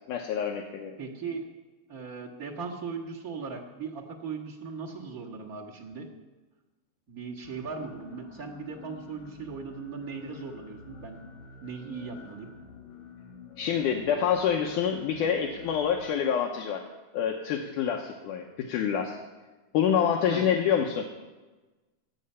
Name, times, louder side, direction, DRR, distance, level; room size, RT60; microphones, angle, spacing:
voice 1, 0.1-1.0 13.6-16.8 17.1-19.2 19.7-21.1, left 8 dB, 75° left, 2 dB, 2.0 m, -27 dB
voice 2, 1.0-1.4 1.9-6.0 7.1-11.2 11.6-12.5 20.3-20.5, right 5 dB, 65° right, -3 dB, 0.8 m, -38 dB
sound 1, 7.4-16.0, left 5 dB, 50° left, 4.1 m, -49 dB
21.5 x 8.4 x 5.6 m, 1.2 s
omnidirectional pair, 4.4 m